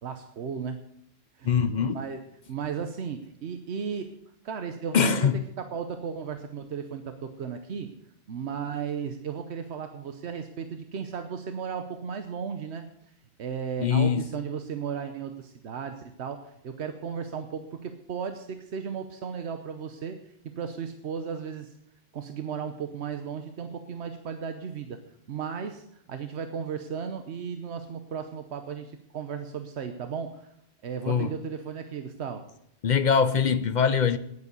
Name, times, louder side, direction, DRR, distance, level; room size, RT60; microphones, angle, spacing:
voice 1, 0.0-0.8 1.3-1.7 1.9-2.2 2.5-4.1 4.4-5.3 5.7-7.9 8.3-12.9 13.4-20.2 20.6-21.7 22.1-25.0 25.3-30.5 30.8-32.4, right 7 dB, 85° right, 1.1 m, -35 dB
voice 2, 1.4-2.0 4.9-5.4 13.8-14.2 31.0-31.3 32.8-34.2, left 6 dB, 50° left, 0.7 m, -23 dB
9.8 x 9.6 x 8.1 m
omnidirectional pair, 1.1 m